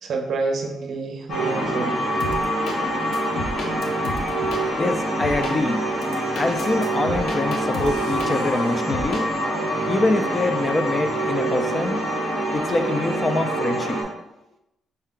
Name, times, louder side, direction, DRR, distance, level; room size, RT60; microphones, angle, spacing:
voice 1, 0.0-2.0, right 3 dB, 55° right, 4 dB, 0.6 m, -28 dB
sound 1, 1.3-14.0, right 1 dB, 65° left, 1.4 m, -25 dB
sound 2, 2.2-2.8 3.1-4.6 5.2-5.5 6.0-8.6 8.9-9.2, left 2 dB, 90° left, 0.6 m, -32 dB
voice 2, 4.8-5.8 6.3-9.3 9.9-12.1 12.5-14.0, left 2 dB, 20° left, 7 dB, 0.3 m, -24 dB
5.5 x 2.2 x 3.6 m, 0.90 s
cardioid pair, 160°, 0 cm